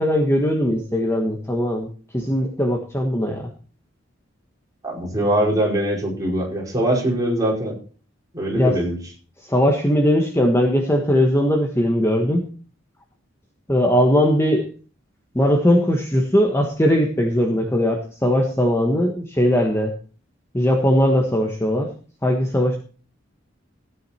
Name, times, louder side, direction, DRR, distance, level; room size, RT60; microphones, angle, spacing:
voice 1, 0.0-1.9 2.1-3.5 8.5-8.8 9.5-12.4 13.7-14.7 15.3-19.9 20.5-21.9 22.2-22.8, equal, 15° left, 2 dB, 1.4 m, -19 dB
voice 2, 4.8-7.7 8.3-9.0, right 1 dB, 20° right, -2 dB, 5.1 m, -22 dB
15.5 x 9.6 x 4.3 m, 0.39 s
head